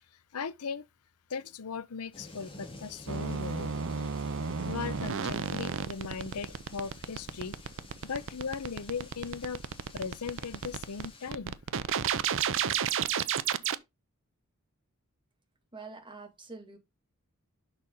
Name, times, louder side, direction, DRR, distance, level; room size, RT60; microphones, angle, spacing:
voice 1, 0.3-0.8 1.3-3.7 4.7-7.6 8.0-9.6 9.9-11.5, left 5 dB, 90° left, 0.7 m, -38 dB
sound 1, 2.1-11.3, left 2 dB, 25° left, 2.2 m, -51 dB
sound 2, 3.1-13.8, right 7 dB, 60° right, 0.6 m, -31 dB
voice 2, 15.7-16.8, right 3 dB, 20° right, 2.0 m, -45 dB
6.9 x 5.9 x 3.9 m
head